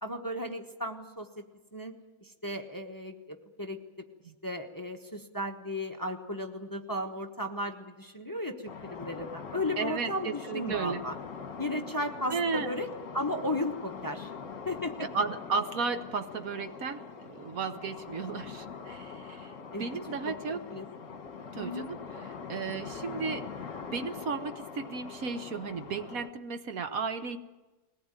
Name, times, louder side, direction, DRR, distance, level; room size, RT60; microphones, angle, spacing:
voice 1, 0.0-1.4 1.7-3.8 4.4-11.2 11.6-14.3 14.6-15.1 19.7-19.9 20.3-20.4 20.7-21.2 21.5-21.9, left 1 dB, 15° left, 5 dB, 1.0 m, -35 dB
sound 1, 8.7-26.3, left 5 dB, 55° left, 1.6 m, -43 dB
voice 2, 9.8-11.0 12.3-12.7 15.0-19.5 19.8-20.7 21.5-22.0 22.5-23.5 23.8-27.4, right 5 dB, 65° right, 9 dB, 1.5 m, -34 dB
21.5 x 18.5 x 9.0 m, 1.2 s
omnidirectional pair, 1.6 m